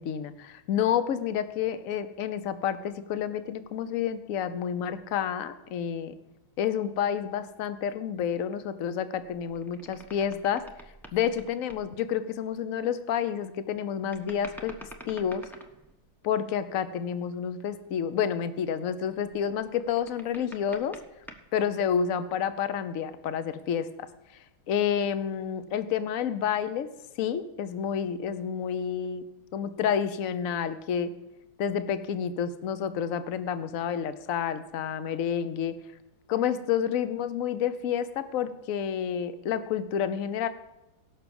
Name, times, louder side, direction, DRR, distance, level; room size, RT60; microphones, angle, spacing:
voice 1, 0.0-6.1 6.6-10.6 11.1-14.7 15.1-15.4 16.2-21.0 21.5-24.1 24.7-26.9 27.2-29.2 29.5-31.1 31.6-35.7 36.3-40.5, left 8 dB, 55° left, 11 dB, 0.9 m, -29 dB
sound 1, 9.2-11.8 14.1-16.0 19.2-21.5, right 1 dB, ahead, 0.6 m, -48 dB
17.5 x 6.0 x 7.0 m, 0.92 s
omnidirectional pair, 2.2 m